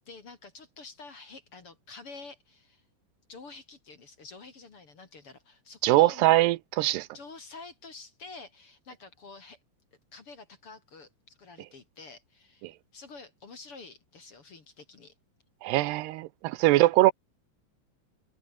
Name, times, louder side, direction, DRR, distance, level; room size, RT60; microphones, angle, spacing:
voice 1, 0.1-2.9 3.3-6.2 7.1-9.6 10.1-15.1 16.7-16.9, left 4 dB, 35° left, 3.0 m, -48 dB
voice 2, 5.8-7.1 12.6-12.7 15.6-17.1, right 17 dB, 80° right, 2.7 m, -22 dB
omnidirectional pair, 4.9 m